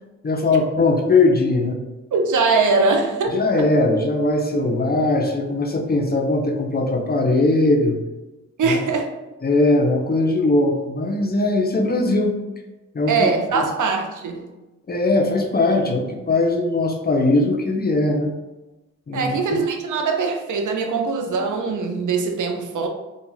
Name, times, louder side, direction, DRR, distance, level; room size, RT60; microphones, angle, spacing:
voice 1, 0.2-1.8 3.3-8.0 8.6-8.8 9.4-12.4 12.9-13.2 13.5-13.7 14.9-18.4 19.1-19.6, left 2 dB, 30° left, 0.5 m, -20 dB
voice 2, 2.1-3.3 3.6-3.7 8.6-9.1 13.1-14.5 19.1-22.9, right 4 dB, 75° right, 0.5 m, -21 dB
2.3 x 2.2 x 3.0 m
cardioid pair, 55°, 31 cm